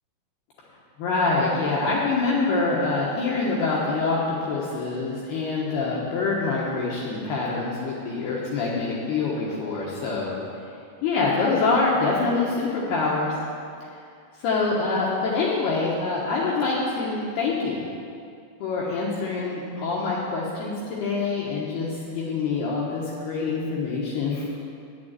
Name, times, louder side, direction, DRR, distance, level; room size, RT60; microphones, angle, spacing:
voice 1, 1.0-10.4 11.0-13.3 14.4-17.8 18.6-20.7 21.0-24.6, left 3 dB, 70° left, -5 dB, 2.8 m, -25 dB
9.4 x 7.5 x 8.9 m, 2.4 s
omnidirectional pair, 5.7 m